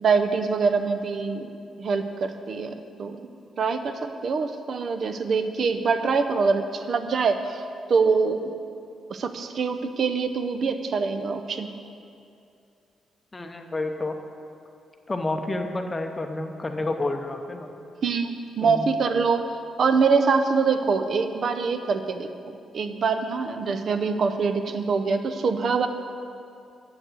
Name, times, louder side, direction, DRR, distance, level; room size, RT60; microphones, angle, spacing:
voice 1, 0.0-1.5 1.8-3.2 3.6-7.6 7.9-8.5 9.1-11.8 18.0-19.5 19.8-22.3 22.7-25.9, right 5 dB, 55° right, 8 dB, 0.6 m, -24 dB
voice 2, 13.3-14.2 15.1-17.7 18.6-18.9, left 2 dB, 20° left, 5 dB, 0.7 m, -29 dB
7.8 x 6.3 x 7.8 m, 2.6 s
cardioid pair, 120°, 0 cm